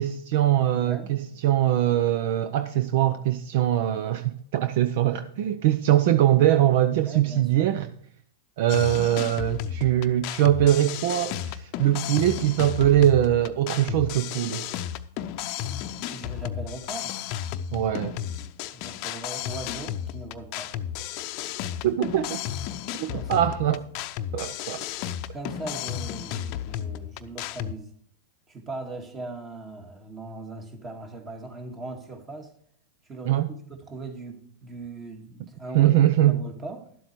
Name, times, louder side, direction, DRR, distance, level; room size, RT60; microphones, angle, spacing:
voice 1, 0.0-7.9 8.6-14.7 17.7-18.1 21.8-22.4 23.0-23.8 24.3-24.9 33.3-33.5 35.7-36.4, right 12 dB, 60° right, 0.6 m, -22 dB
voice 2, 0.7-1.1 7.1-7.8 16.1-17.2 18.7-20.7 23.0-23.8 25.3-27.9 28.5-32.5 33.1-33.4 33.7-36.9, right 3 dB, 25° right, 2.3 m, -39 dB
sound 1, 8.7-27.7, left 10 dB, 50° left, 0.7 m, -33 dB
11.5 x 7.8 x 4.5 m
hypercardioid pair, 115°, 0 cm